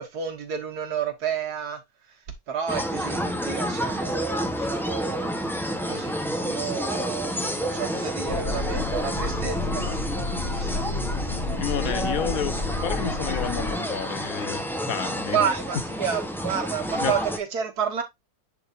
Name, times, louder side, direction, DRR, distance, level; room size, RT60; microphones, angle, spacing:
voice 1, 0.0-1.8 2.5-5.4 5.9-10.9 15.3-18.0, right 7 dB, 85° right, 1.8 m, -30 dB
sound 1, 2.7-17.4, equal, ahead, 0.6 m, -30 dB
sound 2, 8.3-13.7, left 2 dB, 40° left, 1.4 m, -30 dB
voice 2, 11.6-15.4 16.9-17.1, left 9 dB, 70° left, 1.2 m, -30 dB
10.5 x 3.7 x 2.5 m
omnidirectional pair, 1.6 m